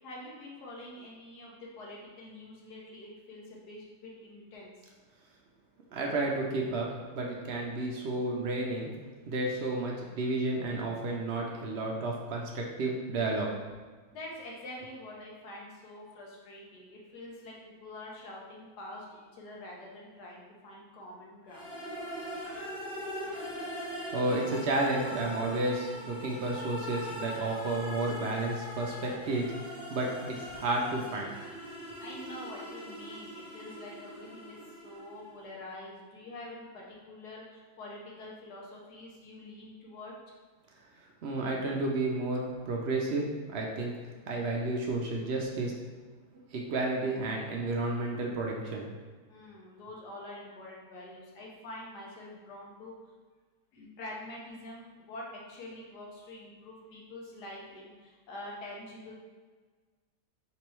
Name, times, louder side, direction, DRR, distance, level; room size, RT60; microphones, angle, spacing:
voice 1, 0.0-4.9 14.1-21.8 32.0-40.3 49.3-53.0 53.7-59.1, left 1 dB, 70° left, -3 dB, 1.4 m, -46 dB
voice 2, 5.9-8.9 9.3-13.5 24.1-31.3 41.2-43.9 44.3-45.7 46.5-48.9, right 2 dB, 70° right, -1 dB, 0.6 m, -31 dB
sound 1, 21.5-35.3, equal, 5° right, 0.4 m, -42 dB
3.7 x 3.0 x 4.5 m, 1.4 s
omnidirectional pair, 1.8 m